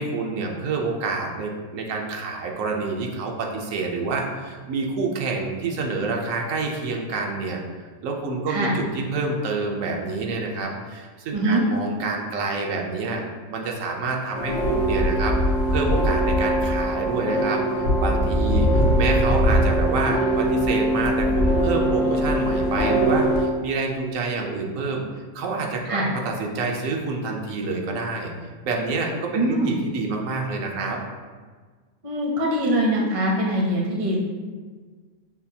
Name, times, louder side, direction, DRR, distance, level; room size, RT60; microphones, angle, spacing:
voice 1, 0.0-7.6 8.0-13.2 13.5-18.7 19.0-25.0 25.3-28.3 28.6-31.0, right 3 dB, 85° right, 1 dB, 1.0 m, -27 dB
voice 2, 11.3-11.6 25.9-26.1 29.3-29.7 32.0-34.2, right 1 dB, 40° right, -2 dB, 0.5 m, -23 dB
sound 1, 14.3-23.4, equal, 80° left, 1.0 m, -21 dB
5.6 x 2.3 x 2.7 m, 1.5 s
omnidirectional pair, 1.3 m